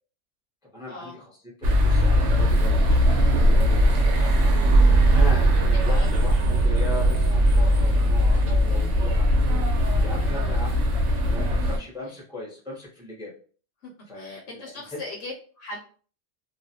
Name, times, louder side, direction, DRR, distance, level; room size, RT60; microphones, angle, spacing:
voice 1, 0.7-1.3 1.8-9.7 10.0-10.8 11.2-13.3 14.1-14.7, left 1 dB, 5° right, -4 dB, 0.5 m, -38 dB
sound 1, 1.6-11.8, equal, 70° right, 0.9 m, -19 dB
voice 2, 5.7-6.1 12.1-12.2 13.8-15.8, left 2 dB, 75° left, -1 dB, 0.9 m, -39 dB
2.4 x 2.1 x 2.7 m, 0.41 s
omnidirectional pair, 1.3 m